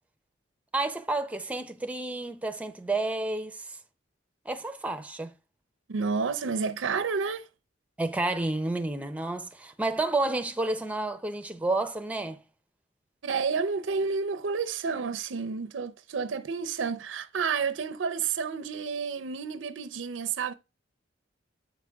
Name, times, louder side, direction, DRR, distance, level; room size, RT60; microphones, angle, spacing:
voice 1, 0.7-3.6 4.5-5.3 8.0-12.4, right 2 dB, 5° right, 0.6 m, -30 dB
voice 2, 5.9-7.5 13.2-20.5, right 5 dB, 75° right, 0.5 m, -30 dB
7.9 x 4.8 x 3.4 m
head